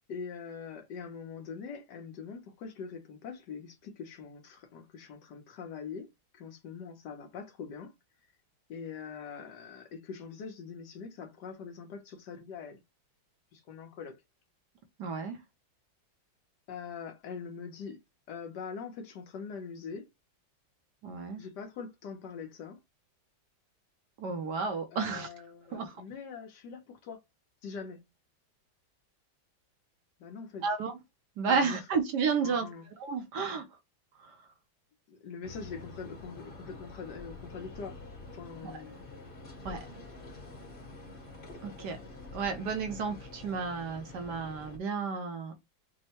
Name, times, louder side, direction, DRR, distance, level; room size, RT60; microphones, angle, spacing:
voice 1, 0.1-7.9 8.7-12.8 13.5-14.2 16.7-18.0 18.3-20.1 21.4-22.8 24.9-27.2 27.6-28.0 30.2-30.7 31.5-31.8 32.4-32.8 35.1-38.0 38.3-39.1, left 6 dB, 65° left, 1.3 m, -43 dB
voice 2, 15.0-15.4 21.0-21.4 24.2-25.3 25.7-26.0 30.6-30.9 31.4-32.7 33.0-33.7 34.1-34.4 39.6-39.9 41.6-42.0 42.3-45.5, right 5 dB, 70° right, 1.2 m, -32 dB
sound 1, 35.4-44.8, left 3 dB, 30° left, 1.2 m, -47 dB
6.2 x 2.2 x 2.8 m
omnidirectional pair, 2.1 m